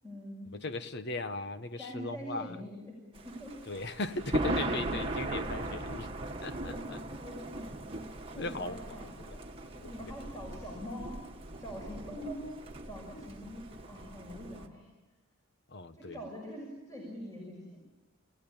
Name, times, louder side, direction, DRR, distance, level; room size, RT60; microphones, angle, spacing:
voice 1, 0.0-0.5 1.8-3.6 6.7-7.7 8.3-9.4 9.7-11.2 11.6-12.5 12.8-14.9 15.9-17.9, equal, 15° left, 6.4 m, -44 dB
voice 2, 0.5-2.5 3.7-6.1 6.4-7.0 8.4-8.8 9.3-9.4 9.8-10.1 15.7-16.2, left 3 dB, 50° left, 1.2 m, -38 dB
Thunder, 3.1-14.7, right 2 dB, 25° right, 1.7 m, -38 dB
30.0 x 17.0 x 8.9 m
head